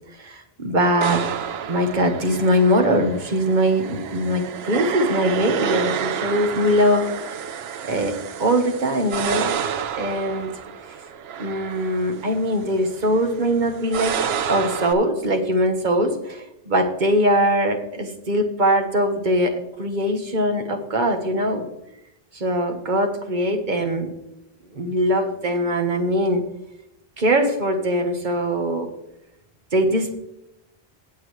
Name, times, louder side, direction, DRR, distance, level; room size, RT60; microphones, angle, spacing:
voice 1, 0.2-1.3 1.7-7.1 7.9-9.6 10.0-10.5 11.4-14.2 14.5-21.7 22.3-24.1 24.7-26.4 27.2-28.9 29.7-30.2, equal, 50° right, 5 dB, 1.4 m, -21 dB
sound 1, 1.0-14.9, right 8 dB, 80° right, 0.9 m, -30 dB
18.0 x 6.3 x 3.2 m, 0.83 s
omnidirectional pair, 1.0 m